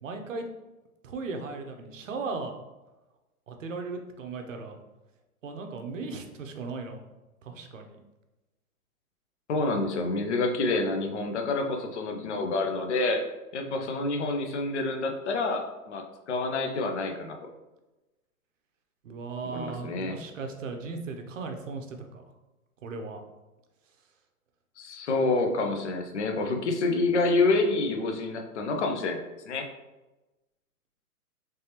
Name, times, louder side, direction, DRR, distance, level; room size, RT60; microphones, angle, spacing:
voice 1, 0.0-0.4 1.0-2.6 3.5-4.8 5.4-7.0 7.4-8.0 19.0-22.2 22.8-23.2, right 4 dB, 55° right, 5 dB, 0.6 m, -37 dB
voice 2, 9.5-13.3 13.5-17.4 19.4-20.2 24.8-29.7, left 3 dB, 50° left, 4 dB, 0.6 m, -28 dB
3.4 x 3.3 x 2.8 m, 1.1 s
hypercardioid pair, 170°, 46 cm